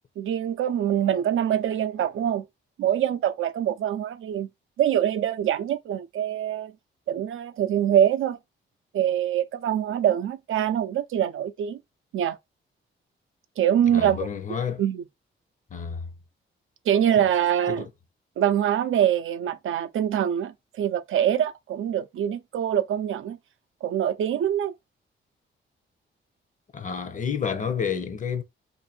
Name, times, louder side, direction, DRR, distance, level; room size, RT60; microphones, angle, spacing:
voice 1, 0.2-2.5 2.8-4.5 4.8-6.7 7.1-8.4 8.9-11.8 12.1-12.4 13.6-14.3 14.8-15.0 16.9-17.9 18.4-23.4 23.8-24.7, right 10 dB, 75° right, 0.5 m, -24 dB
voice 2, 13.9-14.8 15.7-16.1 17.2-17.3 17.7-17.9 26.7-28.4, left 7 dB, 35° left, 0.6 m, -30 dB
2.6 x 2.6 x 4.1 m
cardioid pair, 130°, 21 cm